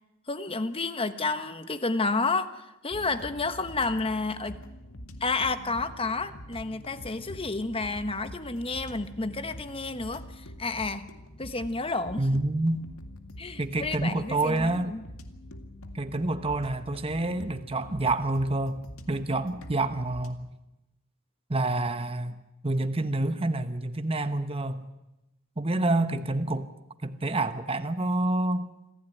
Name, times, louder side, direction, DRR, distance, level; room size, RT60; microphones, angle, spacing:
voice 1, 0.3-4.6 5.2-11.1 11.4-12.4 13.4-15.0, left 3 dB, 25° left, 11 dB, 1.2 m, -30 dB
sound 1, 2.9-20.3, equal, 85° left, 2.1 m, -45 dB
voice 2, 12.2-12.8 13.6-14.9 15.9-18.8 19.1-20.4 21.5-22.4 22.6-24.9 25.6-26.7 27.0-28.7, right 2 dB, 25° right, 9 dB, 1.1 m, -28 dB
26.5 x 15.5 x 9.2 m, 0.96 s
head